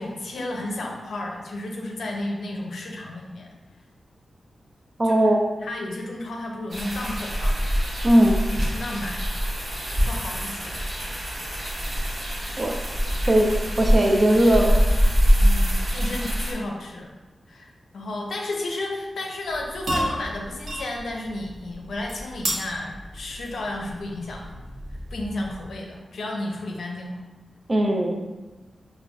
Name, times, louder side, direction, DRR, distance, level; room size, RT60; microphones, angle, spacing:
voice 1, 0.0-3.5 5.0-5.3 5.6-7.6 8.7-9.2 10.0-10.8 15.4-17.1 17.5-24.6 24.9-27.2, left 2 dB, 85° left, 0 dB, 0.5 m, -32 dB
voice 2, 5.0-5.4 8.0-8.4 12.6-12.8 13.3-14.9 27.7-28.2, right 1 dB, 30° right, 2 dB, 0.4 m, -19 dB
sound 1, 6.7-16.5, equal, 60° right, 1.2 m, -24 dB
sound 2, 19.5-25.9, right 1 dB, 80° right, 0.8 m, -33 dB
5.0 x 2.2 x 2.2 m, 1.2 s
wide cardioid pair, 110°, 0 cm